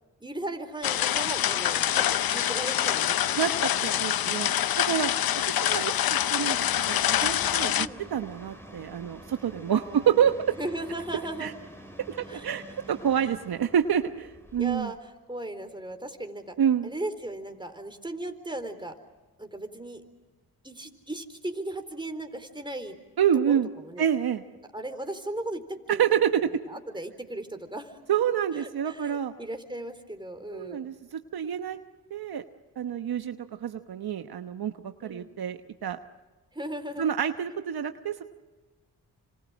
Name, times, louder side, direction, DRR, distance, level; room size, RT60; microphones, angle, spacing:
voice 1, 0.2-4.4 7.8-8.0 9.7-10.2 10.6-11.5 12.3-12.8 14.6-15.0 15.3-16.6 16.8-18.9 19.4-20.0 20.6-23.0 23.5-24.1 24.7-26.0 26.5-28.0 28.5-31.0 35.0-35.3 36.5-37.1, right 1 dB, 10° right, 6 dB, 4.0 m, -37 dB
sound 1, 0.8-7.9, left 11 dB, 60° left, 0.7 m, -26 dB
voice 2, 3.4-5.1 5.5-10.6 11.4-11.5 12.1-14.9 16.6-16.9 23.2-23.7 24.0-24.4 25.9-26.6 28.1-29.3 30.5-31.8 32.1-32.4 32.8-36.0 37.0-38.2, right 9 dB, 65° right, 8 dB, 1.1 m, -28 dB
sound 2, 6.5-14.8, equal, 5° left, 6.4 m, -47 dB
26.5 x 26.5 x 6.3 m, 1.3 s
supercardioid pair, 45°, 39 cm